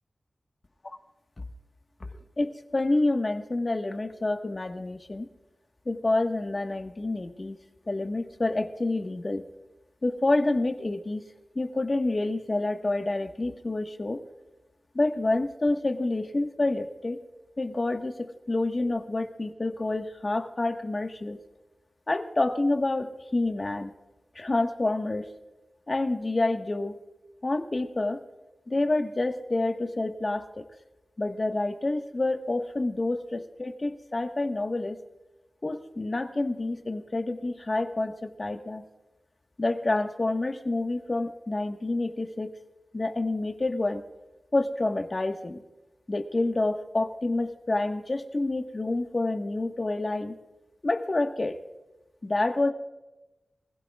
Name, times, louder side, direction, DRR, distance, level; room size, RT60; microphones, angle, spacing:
voice 1, 2.4-5.3 5.8-7.6 7.9-9.4 10.0-11.2 11.5-14.2 14.9-17.2 17.6-21.4 22.1-23.9 24.3-25.3 25.9-27.0 27.4-28.2 28.7-30.6 31.2-35.0 35.6-38.8 39.6-42.5 42.9-44.0 44.5-45.6 46.1-50.4 50.8-51.6 52.2-52.7, left 2 dB, 40° left, 5 dB, 1.5 m, -28 dB
24.5 x 16.5 x 2.4 m, 1.0 s
wide cardioid pair, 65°, 0 cm